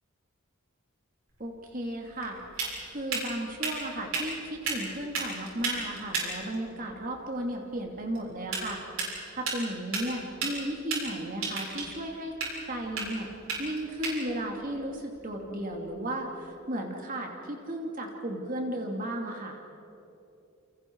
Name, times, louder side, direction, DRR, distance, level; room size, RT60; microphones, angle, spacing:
sound 1, 1.3-16.0, right 4 dB, 80° right, 7.3 m, -36 dB
voice 1, 1.4-2.4 2.9-8.8 9.3-12.4 12.7-13.3 13.6-19.6, right 1 dB, 40° right, 1 dB, 2.6 m, -35 dB
29.5 x 29.0 x 4.7 m, 2.9 s
head